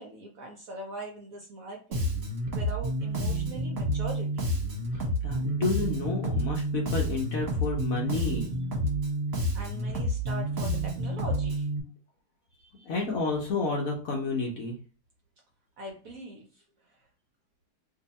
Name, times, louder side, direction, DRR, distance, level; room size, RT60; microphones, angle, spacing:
voice 1, 0.0-2.0 2.5-4.5 9.5-11.7 12.5-12.9 15.8-17.1, right 2 dB, 65° right, 1 dB, 0.9 m, -42 dB
Bass guitar, 1.9-11.8, right 1 dB, 40° right, 1.1 m, -29 dB
voice 2, 4.9-8.5 12.8-14.8, left 3 dB, 65° left, 0 dB, 0.9 m, -30 dB
2.7 x 2.7 x 4.0 m, 0.38 s
omnidirectional pair, 2.0 m